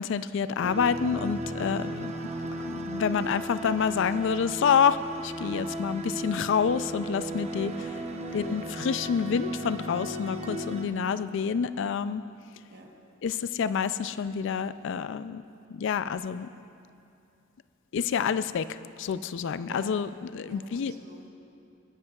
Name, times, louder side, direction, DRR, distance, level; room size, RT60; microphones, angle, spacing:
voice 1, 0.0-2.1 2.6-5.0 5.2-7.7 8.3-12.2 13.2-15.4 15.7-16.5 17.9-18.7 19.0-20.9, left 6 dB, 65° left, 14 dB, 0.4 m, -28 dB
sound 1, 0.6-10.9, right 1 dB, 35° right, 0.7 m, -36 dB
voice 2, 7.7-8.1 12.7-12.9 19.7-20.0 20.5-21.3, right 1 dB, 50° right, 0 dB, 1.2 m, -47 dB
22.5 x 11.0 x 2.4 m, 2.6 s
head